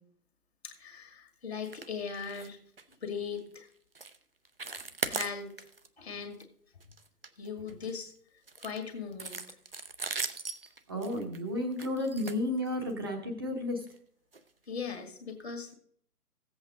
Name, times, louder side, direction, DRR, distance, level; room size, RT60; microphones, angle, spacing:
voice 1, 0.6-2.6 3.0-3.7 4.7-5.7 6.0-6.4 7.4-8.1 8.6-9.4 14.7-15.7, left 6 dB, 40° left, 4 dB, 1.8 m, -39 dB
sound 1, 1.6-1.9 2.2-2.5 2.8-2.9 3.4-3.6 3.9-4.2 4.4-5.9 6.2-6.4 6.8-7.9 8.5-13.1 13.8-14.0 14.3-14.4 14.9-15.0, right 4 dB, 40° right, 0.5 m, -39 dB
voice 2, 10.9-13.9, left 1 dB, 15° right, 2 dB, 0.8 m, -32 dB
15.0 x 8.0 x 3.8 m, 0.64 s
figure-of-eight pair, 140°, 46 cm